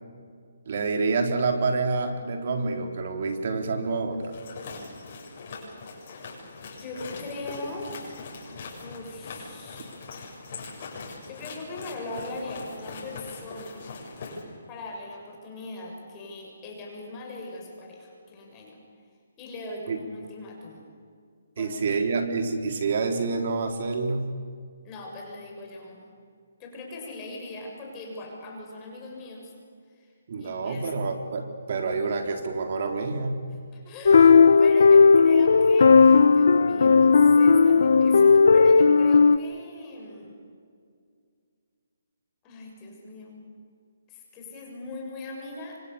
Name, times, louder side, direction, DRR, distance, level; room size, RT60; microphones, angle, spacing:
voice 1, 0.7-4.4 19.9-20.0 21.6-24.3 30.3-33.4, right 4 dB, 55° right, 5 dB, 3.9 m, -27 dB
sound 1, 4.2-14.4, left 3 dB, 45° left, 7.4 m, -41 dB
voice 2, 6.8-8.2 8.8-9.9 11.3-13.9 14.7-18.8 19.4-20.8 21.6-22.0 24.8-26.0 26.6-29.5 29.9-30.1 30.4-30.9 33.7-40.4 42.4-43.4 44.1-45.8, left 2 dB, 20° left, 0 dB, 6.8 m, -40 dB
sound 2, 34.1-39.4, left 5 dB, 70° left, 0.9 m, -15 dB
27.5 x 25.5 x 7.1 m, 2.2 s
hypercardioid pair, 160°, 0 cm